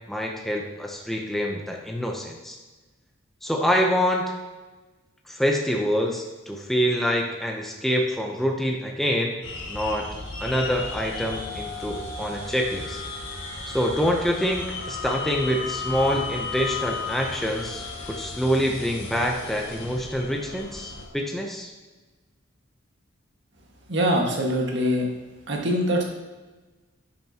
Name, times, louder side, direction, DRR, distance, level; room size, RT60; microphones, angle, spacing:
voice 1, 0.1-2.6 3.4-4.3 5.3-9.4 9.7-10.1 10.4-13.0 13.7-21.7, equal, ahead, 0 dB, 0.7 m, -26 dB
sound 1, 9.4-21.0, left 4 dB, 75° left, 1.6 m, -34 dB
voice 2, 23.9-25.1 25.5-26.0, equal, 65° right, 0 dB, 1.7 m, -23 dB
10.0 x 7.4 x 2.9 m, 1.2 s
head